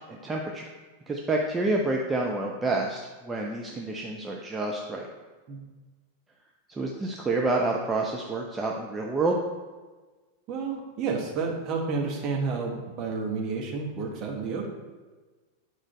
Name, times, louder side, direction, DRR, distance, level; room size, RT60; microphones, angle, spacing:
voice 1, 0.1-0.6 1.1-5.1 6.7-9.4, right 2 dB, 15° right, -1 dB, 0.8 m, -28 dB
voice 2, 10.5-14.7, right 4 dB, 35° right, 0 dB, 1.6 m, -30 dB
8.9 x 4.9 x 4.4 m, 1.3 s
figure-of-eight pair, 90°, 0 cm